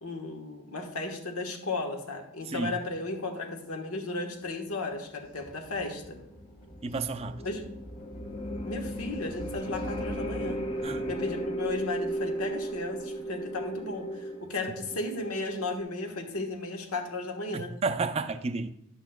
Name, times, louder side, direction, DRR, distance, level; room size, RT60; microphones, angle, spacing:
voice 1, 0.0-6.2 7.4-7.6 8.6-10.6 11.1-17.7, left 2 dB, 90° left, 4 dB, 1.3 m, -35 dB
sound 1, 5.2-10.8, left 1 dB, 40° left, 1.4 m, -54 dB
sound 2, 5.5-15.8, right 1 dB, 25° left, 0.6 m, -36 dB
voice 2, 6.8-7.4 10.8-11.1 17.5-18.7, right 4 dB, 30° right, 9 dB, 0.4 m, -31 dB
11.0 x 8.2 x 2.3 m, 0.83 s
head